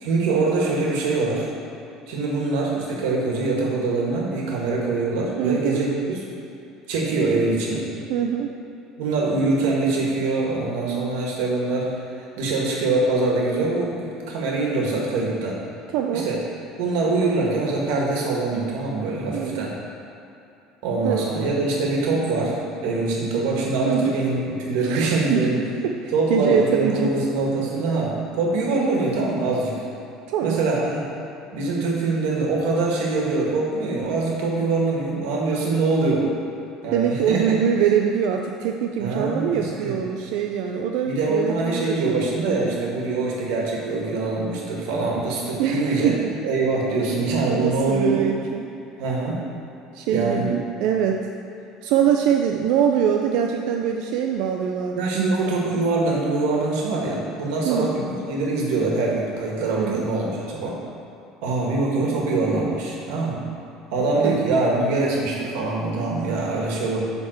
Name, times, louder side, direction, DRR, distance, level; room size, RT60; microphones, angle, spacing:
voice 1, 0.0-1.5 2.1-6.2 6.9-7.9 9.0-12.0 12.4-15.6 16.1-16.4 16.8-19.7 20.8-22.6 22.8-25.6 26.1-29.8 30.4-31.0 31.5-36.3 36.8-37.4 39.0-40.0 41.0-48.2 49.0-49.4 50.1-50.5 54.9-60.8 61.4-63.4 63.9-67.0, right 3 dB, 80° right, -3 dB, 1.6 m, -23 dB
voice 2, 5.4-5.8 8.1-8.5 15.9-16.3 19.3-19.7 21.0-21.3 23.8-24.1 24.8-27.1 30.3-30.6 36.9-42.2 42.5-42.8 45.6-46.2 47.5-48.6 49.9-51.3 51.8-55.3 57.7-58.0 59.8-60.0 64.2-64.4, right 8 dB, 60° right, 3 dB, 0.4 m, -23 dB
9.7 x 3.5 x 6.5 m, 2.7 s
cardioid pair, 170°, 0 cm